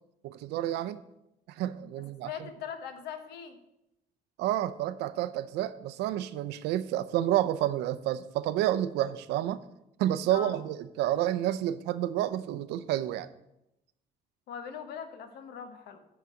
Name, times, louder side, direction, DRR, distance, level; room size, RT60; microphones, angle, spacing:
voice 1, 0.2-1.0 1.5-2.3 4.4-9.6 10.0-13.3, right 12 dB, 85° right, 0.6 m, -29 dB
voice 2, 2.2-3.6 10.3-10.6 14.5-16.0, left 7 dB, 75° left, 1.3 m, -40 dB
10.5 x 4.0 x 7.4 m
cardioid pair, 110°, 17 cm